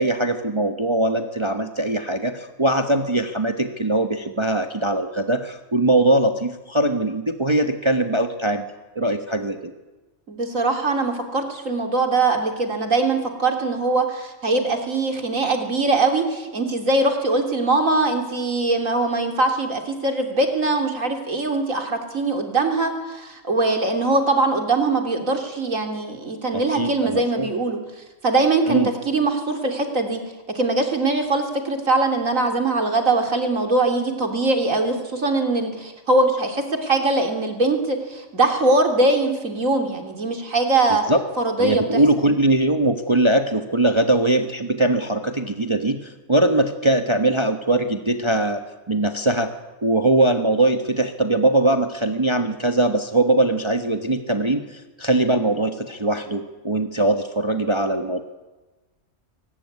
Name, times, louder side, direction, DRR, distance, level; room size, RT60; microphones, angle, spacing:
voice 1, 0.0-8.6 8.9-9.7 26.5-27.5 28.7-28.9 41.1-41.2 41.6-48.6 48.9-49.5 49.8-58.2, right 1 dB, 20° right, 7 dB, 1.2 m, -21 dB
voice 2, 10.3-27.8 28.2-30.2 30.6-41.0 41.4-42.0, right 2 dB, 75° right, 4 dB, 3.5 m, -22 dB
22.5 x 19.0 x 9.6 m, 1.1 s
omnidirectional pair, 1.4 m